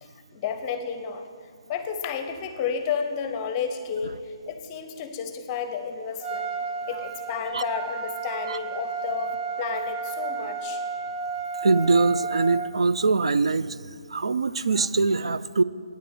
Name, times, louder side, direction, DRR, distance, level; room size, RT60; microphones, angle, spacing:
voice 1, 0.0-1.3 1.7-6.5 6.9-10.8, left 6 dB, 20° left, 7 dB, 0.7 m, -32 dB
Trumpet, 6.2-12.7, right 5 dB, 15° right, 0.6 m, -32 dB
voice 2, 11.6-13.8 14.1-15.6, right 3 dB, 80° right, 15 dB, 0.4 m, -22 dB
9.3 x 6.7 x 8.9 m, 2.2 s
hypercardioid pair, 155°, 3 cm